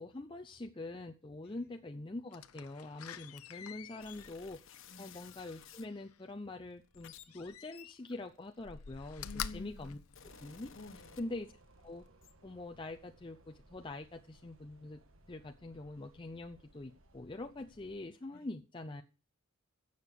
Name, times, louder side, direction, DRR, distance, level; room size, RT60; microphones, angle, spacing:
voice 1, 0.0-4.6 5.0-9.3 9.5-10.0 10.4-10.7 11.2-11.5 11.8-12.0 12.4-15.0 15.3-19.0, left 2 dB, 25° left, 0.6 m, -44 dB
Slam, 2.3-6.2 7.3-8.2 8.6-10.9 11.4-11.5, left 8 dB, 90° left, 0.7 m, -47 dB
sound 1, 4.0-5.9 6.6-9.0 9.7-11.7 12.0-12.3, left 8 dB, 60° left, 1.3 m, -56 dB
voice 2, 4.9-5.2 9.2-10.3 10.7-11.3 18.3-18.5, left 3 dB, 45° left, 1.3 m, -51 dB
sound 2, 10.2-18.0, right 2 dB, 65° right, 1.6 m, -63 dB
16.0 x 6.7 x 6.9 m
head